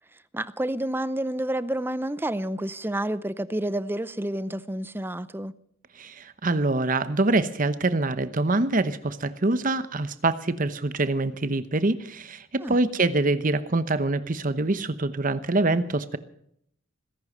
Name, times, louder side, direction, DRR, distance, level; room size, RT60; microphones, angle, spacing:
voice 1, 0.3-5.5 12.6-12.8, right 1 dB, 10° right, 0.6 m, -29 dB
voice 2, 6.0-16.2, right 2 dB, 40° right, 0.9 m, -25 dB
19.5 x 11.0 x 6.7 m
head